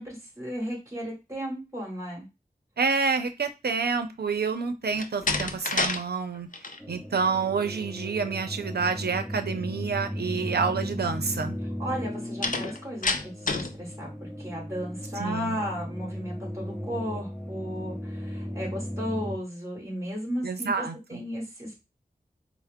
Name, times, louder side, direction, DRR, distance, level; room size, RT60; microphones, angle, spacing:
voice 1, 0.0-2.2 11.8-21.8, equal, 20° right, -2 dB, 2.3 m, -35 dB
voice 2, 2.8-6.5 6.9-11.5 15.2-15.6 20.4-21.2, right 5 dB, 80° right, 8 dB, 0.5 m, -28 dB
Slam, 4.9-6.0 6.3-6.8 12.4-13.8, left 3 dB, 55° left, 0.6 m, -28 dB
sound 1, 6.8-19.4, equal, ahead, 0.7 m, -36 dB
4.3 x 2.0 x 3.5 m, 0.25 s
wide cardioid pair, 65°, 16 cm